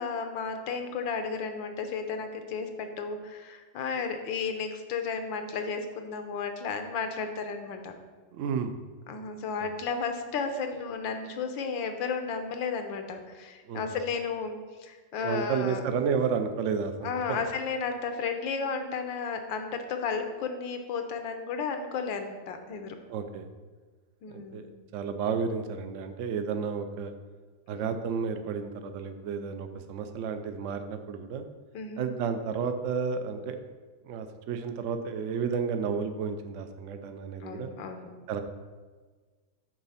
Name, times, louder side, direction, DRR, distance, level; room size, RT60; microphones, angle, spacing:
voice 1, 0.0-7.9 9.1-15.8 17.0-23.0 24.2-24.8 27.7-28.0 31.7-32.1 37.4-38.1, left 5 dB, 85° left, 6 dB, 1.5 m, -33 dB
voice 2, 8.3-8.7 9.6-9.7 13.7-13.8 15.2-17.4 23.1-23.5 24.5-24.7 24.9-27.1 27.7-31.4 32.0-33.6 34.0-37.7 38.3-38.4, right 6 dB, 90° right, 8 dB, 0.6 m, -31 dB
7.9 x 4.1 x 5.6 m, 1.4 s
omnidirectional pair, 2.0 m